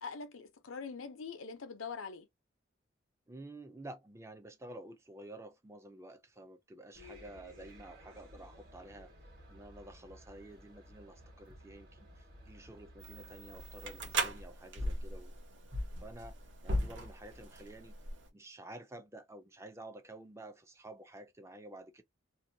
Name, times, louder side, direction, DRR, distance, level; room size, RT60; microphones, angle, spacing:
voice 1, 0.0-2.3, left 5 dB, 90° left, 0.6 m, -43 dB
voice 2, 3.3-9.1 9.5-15.4 16.0-16.3 16.6-17.9 18.3-22.0, right 1 dB, 15° right, 0.3 m, -51 dB
sound 1, 6.9-14.1, equal, 50° right, 1.1 m, -56 dB
sound 2, 13.0-18.3, right 1 dB, 70° right, 0.8 m, -38 dB
2.7 x 2.2 x 2.6 m
head